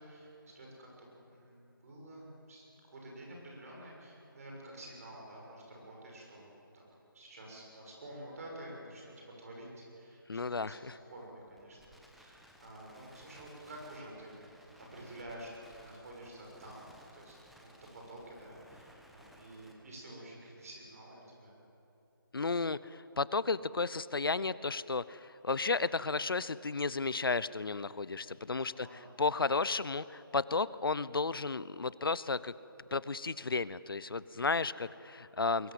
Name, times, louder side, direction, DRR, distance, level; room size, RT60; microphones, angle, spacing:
voice 1, 0.0-2.6 2.9-6.5 6.7-6.8 7.1-14.5 14.8-16.9 17.1-21.6 28.6-29.2, right 1 dB, 40° right, -1 dB, 6.8 m, -50 dB
voice 2, 10.3-10.9 22.3-32.5 32.9-35.7, left 4 dB, 75° left, 18 dB, 0.7 m, -33 dB
Crackle, 10.6-19.7, equal, ahead, 0.9 m, -60 dB
22.5 x 19.0 x 7.8 m, 2.9 s
figure-of-eight pair, 160°, 12 cm